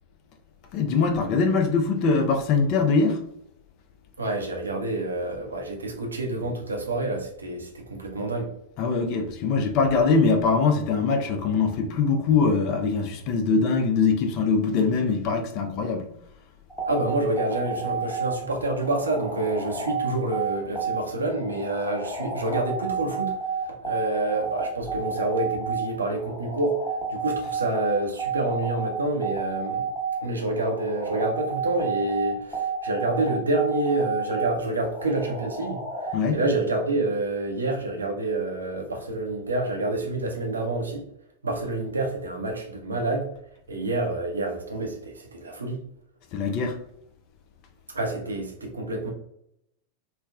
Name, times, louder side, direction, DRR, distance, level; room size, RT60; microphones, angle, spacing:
voice 1, 0.7-3.2 8.8-16.1 36.1-36.4 46.3-46.8, left 4 dB, 40° left, 0.4 m, -22 dB
voice 2, 4.2-8.5 16.9-23.3 23.8-26.8 27.1-29.9 30.2-41.0 41.4-43.3 43.7-45.8 47.9-49.1, right 2 dB, 75° right, 0.6 m, -28 dB
sound 1, 16.7-36.1, right 6 dB, 15° left, 0.9 m, -31 dB
3.2 x 2.1 x 2.3 m
figure-of-eight pair, 90°, 0 cm